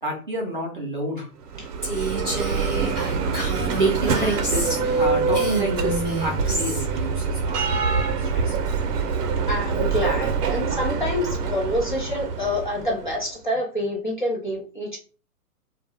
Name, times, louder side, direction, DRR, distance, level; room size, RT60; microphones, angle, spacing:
voice 1, 0.0-1.3 3.8-7.6 8.0-8.6, right 1 dB, 35° right, -1 dB, 0.5 m, -29 dB
Bell, 1.4-13.2, right 5 dB, 85° right, 0.6 m, -25 dB
Female speech woman speaking, 1.8-5.0 5.3-6.9, right 1 dB, 10° left, 0.9 m, -29 dB
voice 2, 9.5-15.0, left 1 dB, 35° left, -3 dB, 0.5 m, -27 dB
2.2 x 2.0 x 3.2 m, 0.36 s
hypercardioid pair, 180°, 46 cm